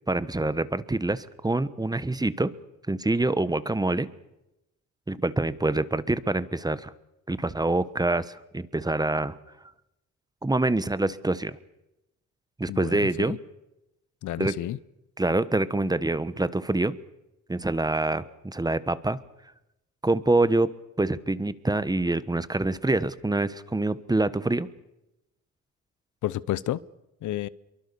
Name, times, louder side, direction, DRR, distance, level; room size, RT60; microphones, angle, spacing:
voice 1, 0.1-2.5 2.9-4.1 5.1-6.9 7.3-9.3 10.4-11.6 12.6-13.4 14.4-14.6 15.2-17.0 17.5-19.2 20.0-20.7 21.0-24.7, right 2 dB, 15° right, 15 dB, 1.2 m, -26 dB
voice 2, 12.7-13.4 14.2-14.8 26.2-26.8 27.2-27.5, left 14 dB, 75° left, 19 dB, 0.9 m, -30 dB
25.5 x 23.5 x 7.0 m, 0.91 s
cardioid pair, 90°, 30 cm